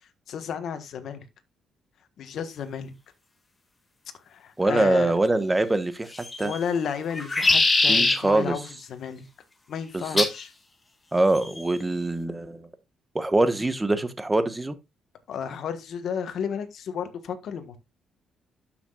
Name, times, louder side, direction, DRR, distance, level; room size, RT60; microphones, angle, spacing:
voice 1, 0.3-1.2 2.2-2.9 4.3-5.2 6.4-9.2 9.7-10.5 15.3-17.8, left 7 dB, 65° left, 1.4 m, -32 dB
voice 2, 4.6-6.1 6.4-6.5 7.9-8.5 9.9-10.3 11.1-12.6 13.1-14.8, right 2 dB, 15° right, 1.2 m, -23 dB
sound 1, 6.1-6.6 7.1-8.2 10.2-10.4 11.4-11.8, left 3 dB, 25° left, 2.0 m, -22 dB
12.5 x 5.9 x 2.4 m
cardioid pair, 90°, 0 cm